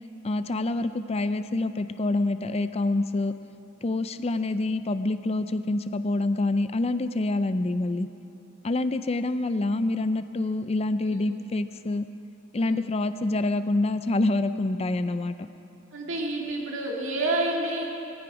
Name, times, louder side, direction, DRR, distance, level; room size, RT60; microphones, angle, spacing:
voice 1, 0.2-3.3 3.8-8.1 8.6-12.1 12.5-15.3, left 2 dB, 30° left, 11 dB, 0.4 m, -26 dB
voice 2, 15.9-17.9, right 2 dB, 60° right, -2 dB, 2.2 m, -29 dB
19.5 x 15.0 x 4.9 m, 2.8 s
head